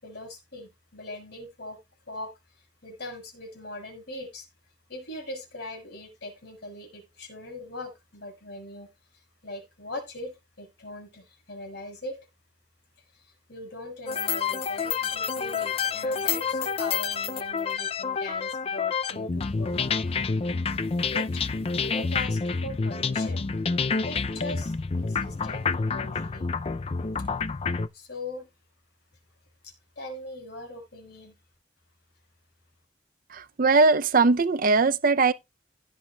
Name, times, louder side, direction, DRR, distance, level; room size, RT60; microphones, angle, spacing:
voice 1, 0.0-1.8 2.1-2.3 2.8-4.5 4.9-8.9 9.4-12.2 13.3-20.2 21.1-21.4 21.7-23.5 24.0-26.5 27.9-28.5 29.6-31.4, left 2 dB, 60° left, 5.5 m, -40 dB
sound 1, 14.1-27.9, left 5 dB, 30° left, 0.4 m, -28 dB
voice 2, 33.3-35.3, right 4 dB, 50° right, 0.6 m, -20 dB
16.5 x 6.5 x 2.3 m
head